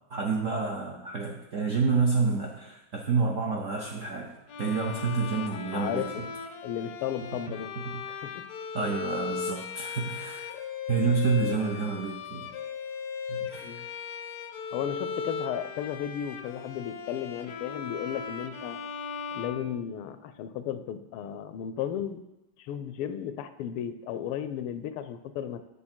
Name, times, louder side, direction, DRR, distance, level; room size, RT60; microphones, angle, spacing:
voice 1, 0.1-4.3 4.6-6.1 8.7-10.5 10.9-12.5 13.3-13.7, right 4 dB, 70° right, 0 dB, 0.7 m, -28 dB
Bowed string instrument, 4.5-20.4, left 6 dB, 70° left, 0.9 m, -37 dB
voice 2, 5.5-6.3 6.6-7.7 8.1-8.5 10.5-10.6 13.6-13.9 14.7-18.8 19.3-22.2 22.6-25.6, left 9 dB, 90° left, 11 dB, 1.5 m, -34 dB
8.6 x 7.0 x 4.4 m, 0.94 s
omnidirectional pair, 2.4 m